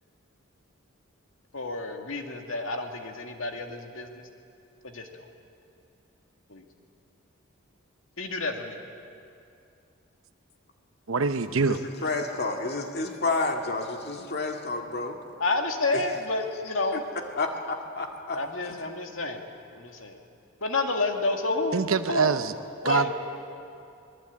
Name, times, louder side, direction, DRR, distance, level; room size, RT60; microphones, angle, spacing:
voice 1, 1.5-4.3 4.8-5.2 6.5-6.6 8.2-8.8 15.4-17.1 18.3-19.4 19.7-20.2 20.6-21.8 22.1-22.4 22.8-23.1, left 2 dB, 70° left, 3 dB, 2.3 m, -29 dB
voice 2, 11.1-11.8 21.7-22.5 22.8-23.1, right 4 dB, 70° right, 9 dB, 0.8 m, -24 dB
voice 3, 11.7-15.2 15.9-16.0 16.9-17.0 17.4-18.4 18.7-18.8, left 3 dB, 50° left, 3 dB, 2.1 m, -30 dB
26.0 x 20.0 x 8.5 m, 2.5 s
head